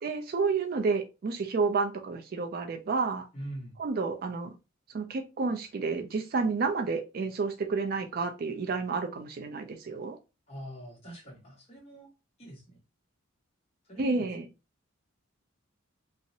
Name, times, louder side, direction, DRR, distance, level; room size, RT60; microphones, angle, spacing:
voice 1, 0.0-3.3 3.8-4.5 4.9-10.2 14.0-14.5, right 4 dB, 45° right, 0.3 m, -30 dB
voice 2, 3.3-3.8 10.5-12.1 12.4-12.8 13.9-14.3, right 1 dB, 30° left, 1.0 m, -43 dB
2.6 x 2.0 x 2.7 m
head